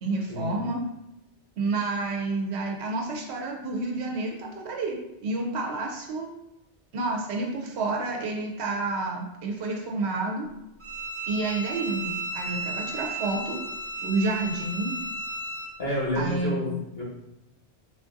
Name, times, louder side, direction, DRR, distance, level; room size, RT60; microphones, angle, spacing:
voice 1, 0.0-0.8 1.6-6.3 6.9-10.5 11.3-13.6 14.0-15.0 16.2-16.8, right 2 dB, 70° right, 0 dB, 0.9 m, -29 dB
Bowed string instrument, 10.8-15.7, right 2 dB, 20° right, 0.4 m, -34 dB
voice 2, 15.8-17.0, equal, 60° left, -6 dB, 1.3 m, -29 dB
3.9 x 2.4 x 2.5 m, 0.87 s
omnidirectional pair, 1.2 m